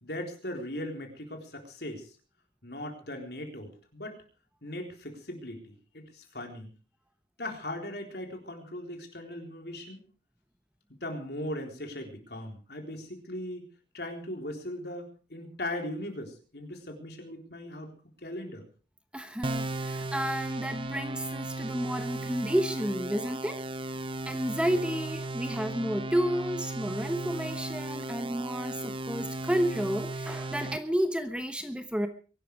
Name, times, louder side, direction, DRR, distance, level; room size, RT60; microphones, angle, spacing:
voice 1, 0.0-2.1 2.6-4.2 4.6-6.7 7.4-10.0 10.9-13.7 13.9-17.9 18.2-18.7, left 1 dB, 60° left, 3 dB, 3.9 m, -39 dB
voice 2, 19.1-23.6 24.2-32.1, equal, 5° right, 8 dB, 1.0 m, -31 dB
sound 1, 19.4-30.8, right 2 dB, 30° right, 0.8 m, -36 dB
23.0 x 11.5 x 4.8 m, 0.39 s
head